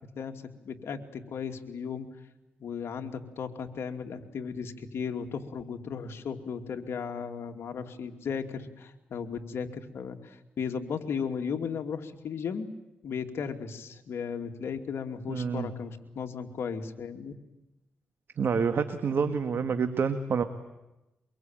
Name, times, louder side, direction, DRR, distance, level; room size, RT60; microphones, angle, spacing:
voice 1, 0.1-2.1 2.6-12.7 13.0-17.3, left 6 dB, 70° left, 5 dB, 2.7 m, -36 dB
voice 2, 15.3-15.7 18.4-20.4, right 5 dB, 60° right, 8 dB, 1.8 m, -27 dB
24.5 x 23.0 x 9.1 m, 0.97 s
cardioid pair, 75°, 4 cm